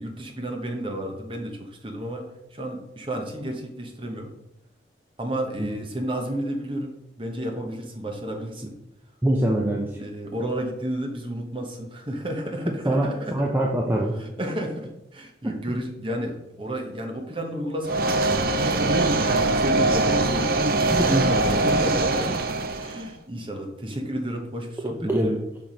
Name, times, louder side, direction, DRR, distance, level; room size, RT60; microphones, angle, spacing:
voice 1, 0.0-4.3 5.2-8.8 9.9-13.3 14.2-18.2 19.0-20.5 21.4-22.4 22.8-25.3, right 1 dB, 30° right, 1 dB, 1.0 m, -32 dB
voice 2, 9.2-9.9 12.7-14.2 15.4-15.6 20.9-21.7 24.9-25.4, right 1 dB, 10° right, -1 dB, 0.6 m, -24 dB
sound 1, 17.8-23.0, right 2 dB, 55° right, 0.6 m, -22 dB
5.7 x 4.6 x 5.1 m, 0.89 s
head